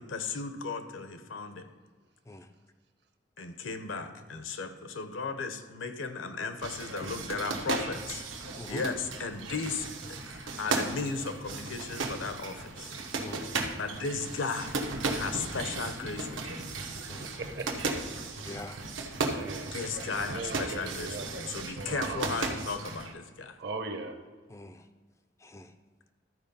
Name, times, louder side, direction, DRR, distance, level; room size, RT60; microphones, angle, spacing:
voice 1, 0.0-1.7 3.4-8.3 8.7-12.9 13.8-14.8 15.1-16.7 19.2-23.6, left 4 dB, 80° left, 8 dB, 0.8 m, -36 dB
sound 1, 6.6-23.1, right 3 dB, 80° right, 1.0 m, -36 dB
voice 2, 17.2-18.0 19.3-19.8 20.3-21.3 21.8-22.3 23.6-24.2, right 3 dB, 55° right, 7 dB, 0.9 m, -38 dB
voice 3, 18.4-18.8 24.5-24.8 25.4-25.7, left 2 dB, 15° left, 9 dB, 0.3 m, -43 dB
12.5 x 4.7 x 5.4 m, 1.4 s
head